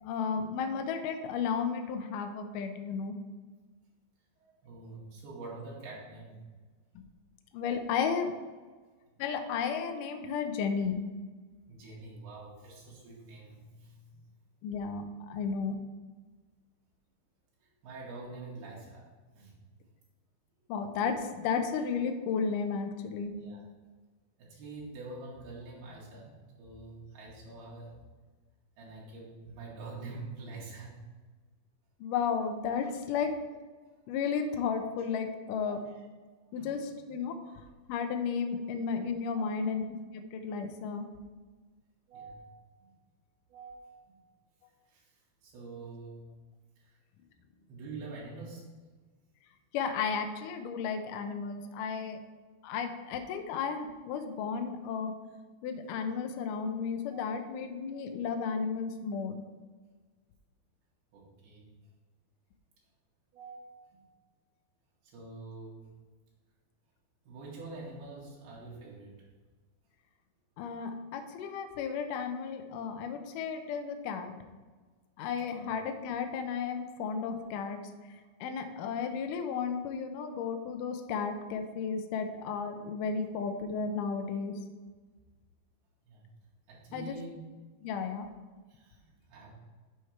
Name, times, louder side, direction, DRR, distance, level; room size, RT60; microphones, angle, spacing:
voice 1, 0.0-3.2 7.5-8.3 9.2-11.0 14.6-15.8 20.7-23.3 32.0-33.3 34.1-35.8 36.5-37.4 37.9-39.8 40.1-41.1 49.7-52.2 52.6-55.1 55.6-59.4 70.6-74.3 75.2-77.8 78.4-84.5 86.9-87.2 87.8-88.3, left 6 dB, 80° left, 6 dB, 1.9 m, -33 dB
voice 2, 4.4-6.4 11.7-14.2 17.8-19.1 19.4-19.5 23.3-23.6 24.4-28.0 28.8-31.0 32.8-32.9 33.7-33.8 35.6-36.0 36.5-36.8 39.3-39.6 42.1-42.8 43.5-44.2 44.9-45.0 45.4-46.4 47.7-48.7 50.8-50.9 57.1-57.5 61.1-61.7 63.3-64.0 65.1-65.9 67.3-69.1 75.6-75.7 86.1-86.2 86.7-87.4 88.7-89.5, right 3 dB, 75° right, -5 dB, 4.1 m, -46 dB
8.0 x 6.5 x 4.5 m, 1.4 s
omnidirectional pair, 4.6 m